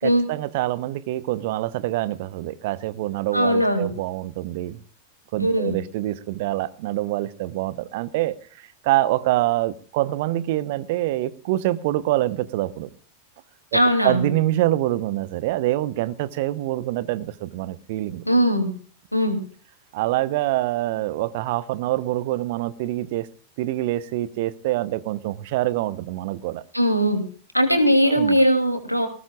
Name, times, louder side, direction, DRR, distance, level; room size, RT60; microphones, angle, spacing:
voice 1, 0.0-4.8 5.3-8.3 8.8-12.9 13.7-18.2 19.9-23.3 23.6-26.6 28.1-28.4, right 15 dB, 50° right, 16 dB, 0.9 m, -25 dB
voice 2, 3.3-3.9 5.4-5.7 13.7-14.3 18.2-18.7 19.1-19.4 26.7-27.2 27.5-29.1, equal, 90° left, 6 dB, 2.8 m, -19 dB
19.5 x 16.5 x 2.4 m, 0.41 s
figure-of-eight pair, 90°, 0 cm